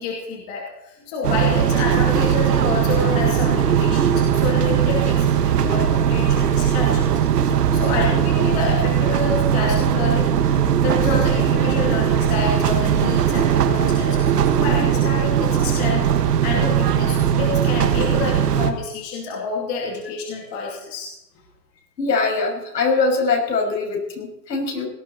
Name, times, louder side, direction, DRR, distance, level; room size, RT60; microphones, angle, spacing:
voice 1, 0.0-21.1, left 4 dB, 25° left, -1 dB, 2.6 m, -28 dB
sound 1, 1.2-18.7, right 8 dB, 70° right, 1.7 m, -19 dB
voice 2, 22.0-24.9, left 4 dB, 75° left, 2 dB, 6.3 m, -22 dB
18.0 x 15.0 x 4.2 m, 0.83 s
hypercardioid pair, 175°, 50 cm